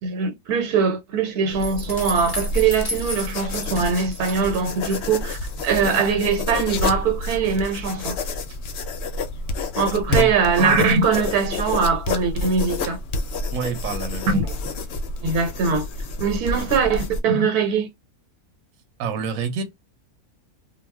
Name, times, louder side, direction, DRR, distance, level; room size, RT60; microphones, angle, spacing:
voice 1, 0.0-8.2 9.8-13.0 14.3-14.5 15.2-15.8 16.2-17.9, right 5 dB, 85° right, 1.2 m, -22 dB
sound 1, 1.5-17.2, left 3 dB, 60° left, 0.7 m, -29 dB
sound 2, 1.6-5.0 5.3-6.0, left 2 dB, 25° left, 0.5 m, -34 dB
voice 2, 13.5-14.4 16.4-16.7 19.0-19.6, right 4 dB, 65° right, 1.0 m, -28 dB
2.3 x 2.3 x 3.3 m
omnidirectional pair, 1.6 m